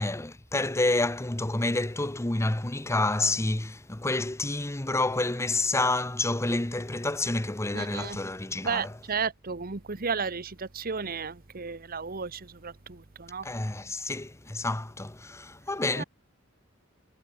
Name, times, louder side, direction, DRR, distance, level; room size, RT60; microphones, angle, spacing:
voice 1, 0.0-9.0 13.4-16.0, left 2 dB, 15° left, 0.9 m, -29 dB
voice 2, 7.7-8.2 8.6-13.5 16.0-16.1, right 5 dB, 45° right, 1.1 m, -33 dB
head